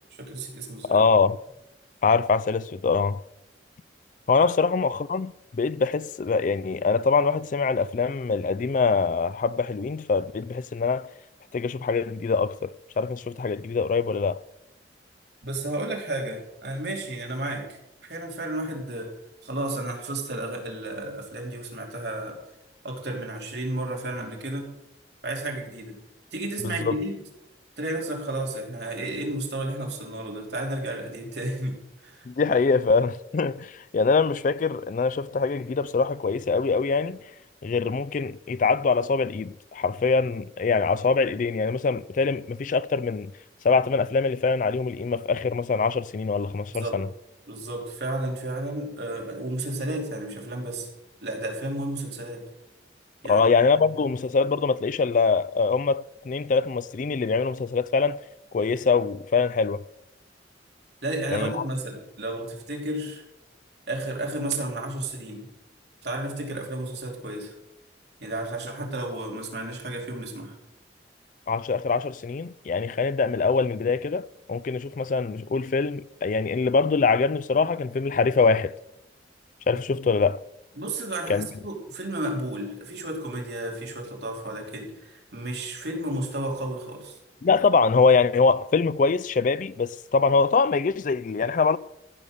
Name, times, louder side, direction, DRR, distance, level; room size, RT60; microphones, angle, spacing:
voice 1, 0.2-1.0 4.4-4.5 15.4-19.1 19.4-22.4 22.8-24.7 25.2-26.0 26.3-27.2 27.8-32.3 46.7-47.0 47.5-50.9 51.2-52.4 53.2-53.8 61.0-63.2 63.9-65.5 66.0-67.5 68.2-70.5 80.8-87.2, right 1 dB, 65° right, 3.0 m, -32 dB
voice 2, 0.9-1.4 2.0-3.2 4.3-11.1 11.5-14.4 26.6-27.0 32.3-37.2 37.6-43.3 43.6-47.1 53.3-58.2 58.5-59.8 61.3-61.6 71.5-78.7 79.7-80.4 81.3-81.5 87.4-91.8, left 4 dB, 45° left, 0.3 m, -23 dB
14.5 x 7.0 x 6.5 m
head